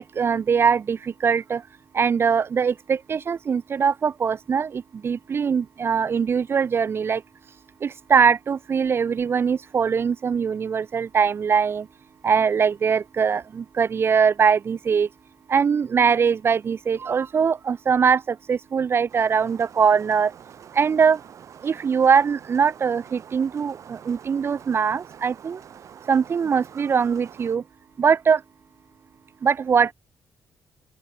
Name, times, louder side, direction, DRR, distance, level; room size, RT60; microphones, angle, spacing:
voice 1, 0.0-1.7 1.9-7.2 7.8-11.9 12.2-15.1 15.5-20.3 20.7-21.2 21.6-25.6 26.1-27.6 28.0-28.4 29.4-29.9, right 6 dB, 40° right, 0.5 m, -22 dB
sound 1, 19.1-27.6, right 8 dB, 60° right, 6.0 m, -46 dB
open air
cardioid pair, 95°, 6 cm